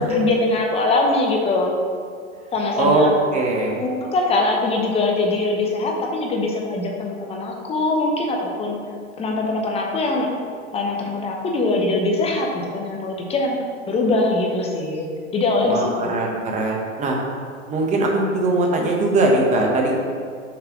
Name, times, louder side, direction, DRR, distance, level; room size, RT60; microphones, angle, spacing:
voice 1, 0.0-1.8 2.5-3.1 3.8-8.8 9.2-10.3 10.7-13.6 13.9-15.1 15.3-16.2, left 2 dB, 15° left, 0 dB, 0.8 m, -22 dB
voice 2, 2.8-3.8 15.6-17.2 17.7-20.0, right 2 dB, 20° right, 0 dB, 1.0 m, -20 dB
6.0 x 3.3 x 5.8 m, 2.1 s
hypercardioid pair, 130°, 38 cm